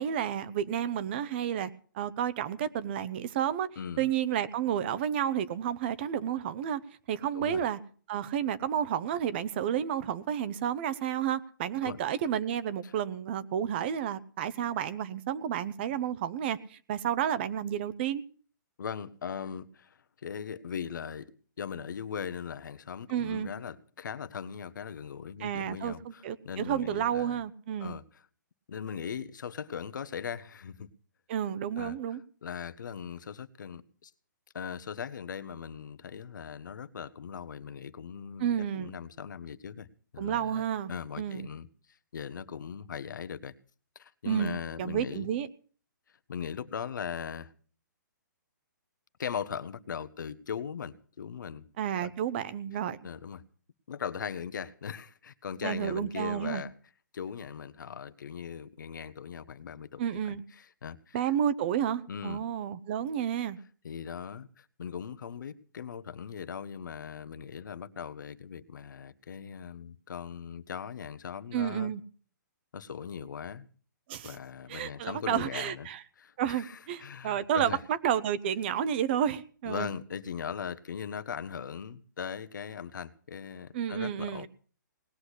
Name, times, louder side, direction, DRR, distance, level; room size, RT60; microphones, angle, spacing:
voice 1, 0.0-3.7 4.0-6.8 7.1-7.8 8.1-18.2 23.1-23.5 25.4-27.9 31.3-32.2 38.4-38.9 40.2-40.9 41.2-41.5 44.3-45.5 51.8-53.0 55.6-56.6 60.0-60.4 61.1-63.6 71.5-72.0 74.1-74.3 74.7-76.0 76.4-79.9 83.7-84.5, right 9 dB, 30° right, 15 dB, 0.8 m, -31 dB
voice 2, 3.8-4.1 7.3-7.6 11.8-12.0 12.8-12.9 18.8-21.3 21.6-27.4 27.8-28.2 28.7-30.9 31.8-32.0 32.4-34.1 34.5-39.9 40.1-41.7 42.1-43.5 43.9-45.3 46.3-47.5 49.2-51.6 52.0-52.1 53.0-53.4 53.9-56.7 57.1-61.2 62.1-62.4 63.8-71.9 72.7-73.7 74.2-75.9 76.2-77.8 79.6-84.5, left 7 dB, 75° left, 13 dB, 1.1 m, -39 dB
19.0 x 6.4 x 10.0 m, 0.43 s
hypercardioid pair, 165°, 10 cm